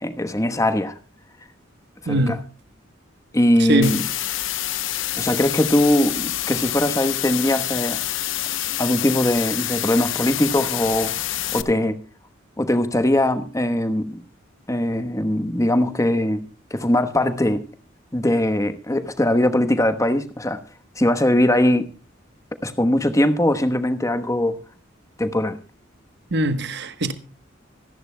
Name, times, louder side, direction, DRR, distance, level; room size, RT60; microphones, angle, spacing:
voice 1, 0.0-1.0 2.0-2.4 3.3-4.0 5.2-8.0 8.8-11.1 11.5-12.0 12.6-14.2 14.7-16.4 16.7-17.6 18.1-20.6 21.0-21.9 22.6-24.6 25.2-25.6, left 1 dB, 15° left, 1.1 m, -21 dB
voice 2, 2.1-2.4 3.7-3.9 26.3-27.1, right 1 dB, 60° right, 1.1 m, -21 dB
sound 1, 3.8-11.6, left 13 dB, 75° left, 0.8 m, -27 dB
25.5 x 11.0 x 2.2 m
head